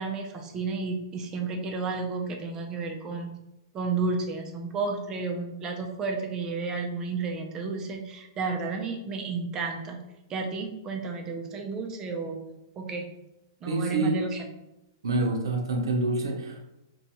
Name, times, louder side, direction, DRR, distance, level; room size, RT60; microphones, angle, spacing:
voice 1, 0.0-3.3 3.7-10.0 10.3-12.4 12.8-13.1 13.6-14.4, right 4 dB, 25° right, 3 dB, 0.5 m, -32 dB
voice 2, 13.7-14.2 15.0-16.6, right 2 dB, 80° right, 2 dB, 0.6 m, -27 dB
2.5 x 2.2 x 2.9 m, 0.93 s
hypercardioid pair, 125°, 2 cm